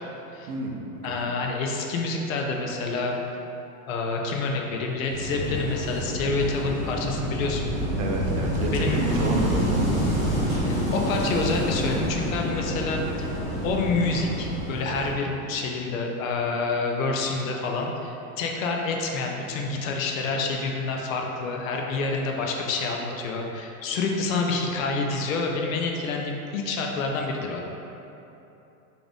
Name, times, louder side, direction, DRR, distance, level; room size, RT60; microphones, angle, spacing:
voice 1, 1.0-3.2 3.9-7.7 8.6-9.1 10.6-13.3 13.6-27.6, left 3 dB, 60° left, 1 dB, 0.5 m, -28 dB
Wind / Waves surf, 5.1-15.1, equal, 5° right, 0.7 m, -27 dB
voice 2, 8.0-9.9, right 3 dB, 65° right, 0 dB, 0.7 m, -29 dB
3.8 x 2.5 x 3.3 m, 3.0 s
supercardioid pair, 170°, 46 cm